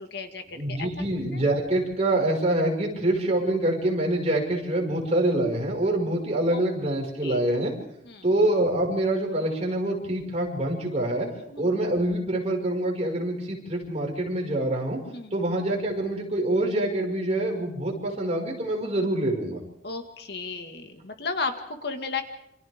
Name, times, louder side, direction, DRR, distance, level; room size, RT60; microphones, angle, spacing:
voice 1, 0.0-0.9 1.3-1.4 6.5-6.6 7.2-7.4 8.0-8.2 11.4-11.7 15.1-15.3 19.8-22.2, left 4 dB, 65° left, 6 dB, 1.9 m, -34 dB
voice 2, 0.5-7.7 8.2-11.3 11.6-15.0 15.3-19.6, right 1 dB, 40° right, -1 dB, 5.6 m, -25 dB
27.5 x 27.0 x 3.7 m, 0.74 s
head